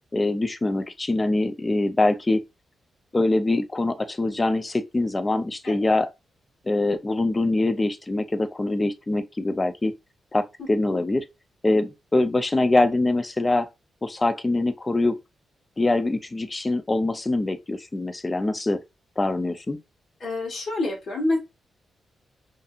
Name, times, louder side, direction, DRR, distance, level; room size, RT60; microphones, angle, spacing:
voice 1, 0.1-2.4 3.1-6.1 6.7-9.9 10.3-11.2 11.6-13.7 14.0-15.2 15.8-18.8 19.2-19.8, left 2 dB, 20° left, 0.3 m, -23 dB
voice 2, 10.6-11.0 20.2-21.4, left 2 dB, 50° left, 1.1 m, -28 dB
2.6 x 2.4 x 2.3 m
wide cardioid pair, 145°, 0 cm